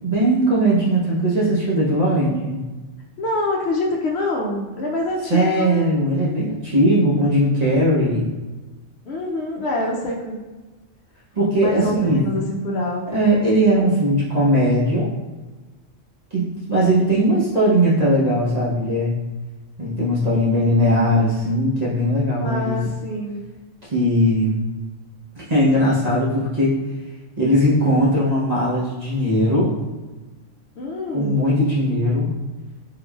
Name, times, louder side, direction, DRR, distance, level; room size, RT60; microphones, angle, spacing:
voice 1, 0.0-2.6 5.3-8.3 11.3-12.2 13.1-15.1 16.3-19.1 19.8-22.8 23.8-24.6 25.3-26.7 27.4-29.7 31.1-32.3, equal, 40° right, -7 dB, 0.8 m, -19 dB
voice 2, 3.2-5.9 9.1-10.4 11.6-13.1 22.4-23.4 30.8-31.4, left 2 dB, 65° left, -1 dB, 0.7 m, -25 dB
3.7 x 3.0 x 2.3 m, 1.2 s
omnidirectional pair, 1.3 m